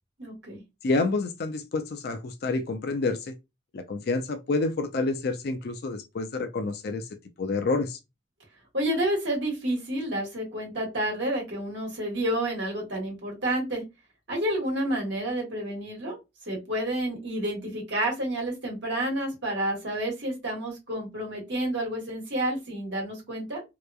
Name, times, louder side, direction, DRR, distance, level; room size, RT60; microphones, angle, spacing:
voice 1, 0.2-0.6 8.7-13.8 14.3-16.2 16.5-23.6, right 1 dB, 65° right, 1.3 m, -29 dB
voice 2, 0.8-3.3 3.7-7.0 7.4-8.0, left 3 dB, 55° left, 0.4 m, -28 dB
2.9 x 2.2 x 2.3 m
head